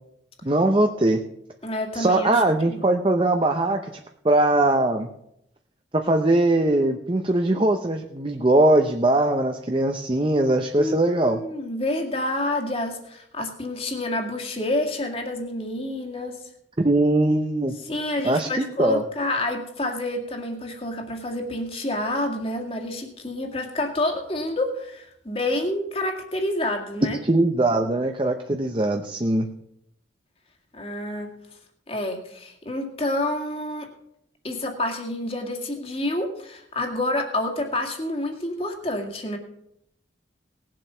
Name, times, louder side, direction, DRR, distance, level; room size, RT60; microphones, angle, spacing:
voice 1, 0.4-1.2 1.9-3.8 4.2-5.1 5.9-11.4 16.8-17.7 18.2-19.0 27.2-29.5, right 2 dB, 30° right, 4 dB, 0.8 m, -21 dB
voice 2, 1.6-2.9 10.8-16.4 17.7-27.2 30.7-31.3 31.9-33.9 34.4-39.4, left 1 dB, 30° left, 3 dB, 2.0 m, -28 dB
19.0 x 7.7 x 5.6 m, 0.78 s
head